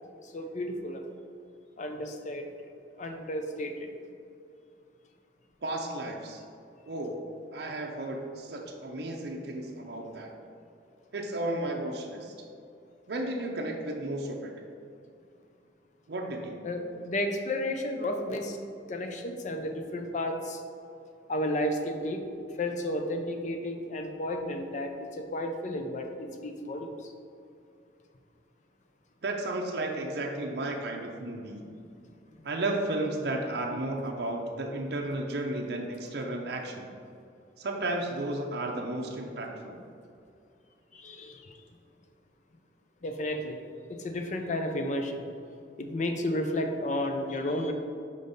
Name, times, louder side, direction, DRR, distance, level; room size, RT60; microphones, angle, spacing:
voice 1, 0.1-1.0 1.8-2.5 3.0-3.9 16.6-18.6 18.9-20.6 21.3-22.2 22.6-27.1 40.9-41.6 43.0-43.6 43.9-45.2 45.8-47.7, left 1 dB, 45° left, 4 dB, 0.5 m, -32 dB
voice 2, 5.6-6.4 6.9-7.2 7.5-10.3 11.1-12.3 13.1-14.5 16.1-16.6 29.2-31.6 32.4-36.9 37.6-39.8, right 2 dB, 60° right, 1 dB, 0.6 m, -33 dB
5.2 x 5.1 x 4.0 m, 2.5 s
head